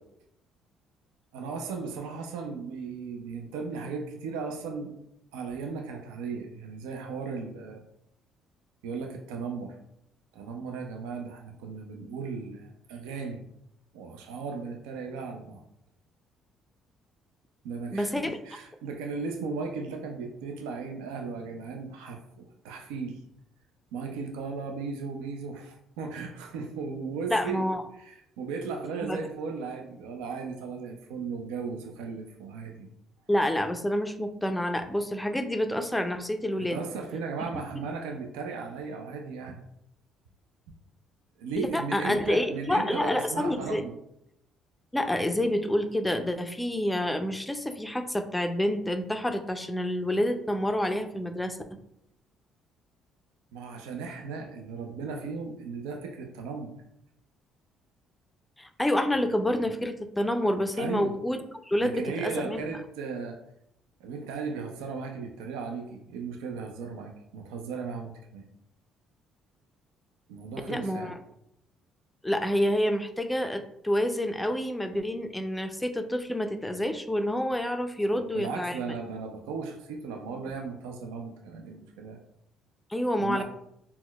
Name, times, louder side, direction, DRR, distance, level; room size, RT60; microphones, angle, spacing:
voice 1, 1.3-4.9 5.3-7.8 8.8-9.8 10.3-13.4 13.9-15.6 17.6-23.2 23.9-27.6 28.0-32.9 36.6-39.6 41.4-43.9 53.5-56.7 60.8-61.1 61.8-63.4 64.0-68.4 70.3-71.1 78.1-82.2 83.2-83.4, right 4 dB, 90° right, 3 dB, 0.3 m, -36 dB
voice 2, 17.9-18.4 27.3-27.8 29.0-29.2 33.3-36.8 37.8-37.9 41.6-43.8 44.9-51.6 58.6-62.6 70.7-71.1 72.2-78.8 82.9-83.4, left 1 dB, 10° left, 6 dB, 0.4 m, -28 dB
4.2 x 2.1 x 2.2 m, 0.78 s
supercardioid pair, 70°, 0 cm